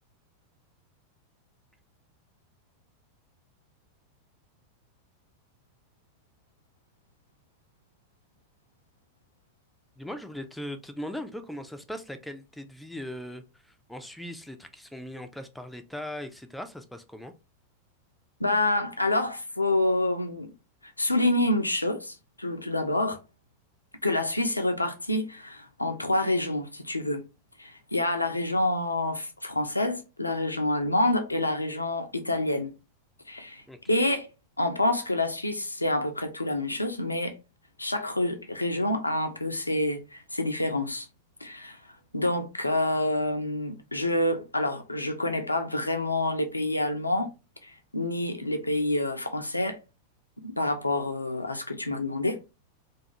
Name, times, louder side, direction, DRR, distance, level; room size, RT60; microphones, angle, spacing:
voice 1, 10.0-17.3 33.7-33.8, left 1 dB, ahead, 0.4 m, -39 dB
voice 2, 18.4-20.5 20.8-23.2 24.0-27.2 27.6-32.7 33.3-34.3 34.6-37.4 37.8-41.1 41.4-47.3 47.6-49.8 50.4-52.4, left 1 dB, 85° left, 0.4 m, -27 dB
2.3 x 2.3 x 2.7 m
figure-of-eight pair, 90°, 0 cm